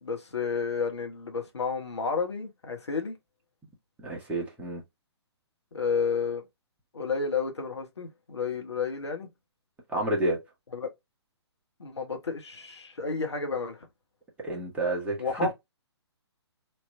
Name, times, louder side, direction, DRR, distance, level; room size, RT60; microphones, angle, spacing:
voice 1, 0.0-3.2 5.7-6.4 6.9-9.3 10.7-10.9 11.8-13.9 15.2-15.5, left 5 dB, 75° left, 1.3 m, -31 dB
voice 2, 4.0-4.8 9.9-10.4 14.4-15.5, right 2 dB, 10° right, 1.3 m, -30 dB
3.3 x 3.0 x 2.6 m
figure-of-eight pair, 130°, 14 cm